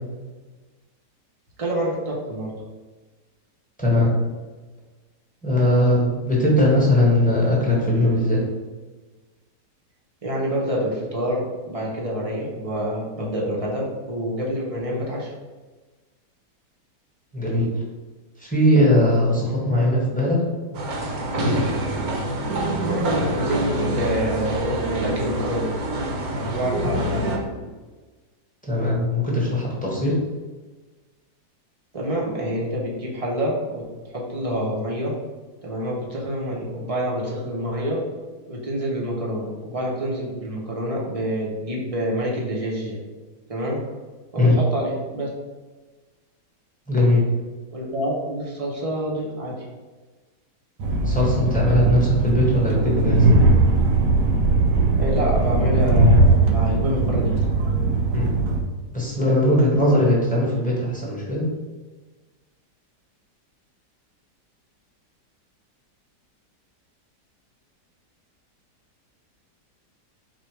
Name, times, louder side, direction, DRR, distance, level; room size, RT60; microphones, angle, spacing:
voice 1, 1.6-2.5 10.2-15.3 22.4-22.5 22.8-25.7 26.3-27.7 31.9-35.1 35.6-38.0 38.5-43.0 43.5-43.8 44.3-45.3 47.7-49.7 55.0-57.4, equal, 35° right, -3 dB, 0.6 m, -27 dB
voice 2, 3.8-4.1 5.4-8.4 17.3-17.7 18.4-20.4 28.6-30.2 44.4-44.6 46.9-47.2 51.0-53.3 58.1-58.3 58.9-61.5, left 1 dB, 5° left, -5 dB, 0.9 m, -19 dB
sound 1, 20.7-27.4, right 1 dB, 60° right, 1.2 m, -26 dB
Train, 50.8-58.6, right 3 dB, 85° right, 1.3 m, -19 dB
4.8 x 2.3 x 4.5 m, 1.3 s
omnidirectional pair, 1.9 m